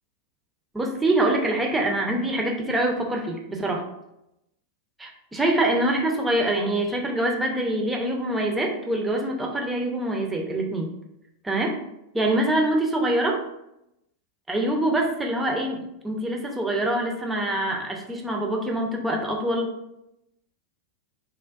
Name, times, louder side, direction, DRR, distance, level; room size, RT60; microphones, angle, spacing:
voice 1, 0.7-3.8 5.0-10.9 11.4-11.8 12.1-13.4 14.5-19.7, right 1 dB, 10° right, 1 dB, 0.5 m, -25 dB
3.4 x 2.1 x 2.3 m, 0.85 s
figure-of-eight pair, 90°, 0 cm